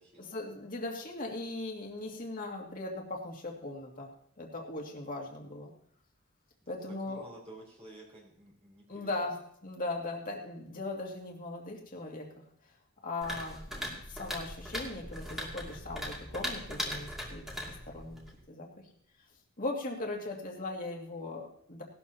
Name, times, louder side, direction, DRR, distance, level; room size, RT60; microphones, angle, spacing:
voice 1, 0.2-5.7 6.7-7.3 8.9-9.3 9.6-12.3 13.0-17.4 17.9-18.2 18.5-18.7 19.6-21.8, left 2 dB, 40° left, 0 dB, 2.5 m, -39 dB
voice 2, 7.0-9.3, right 2 dB, 30° right, -4 dB, 4.1 m, -52 dB
sound 1, 13.2-18.4, equal, ahead, 2.7 m, -39 dB
18.0 x 12.5 x 3.0 m, 0.66 s
head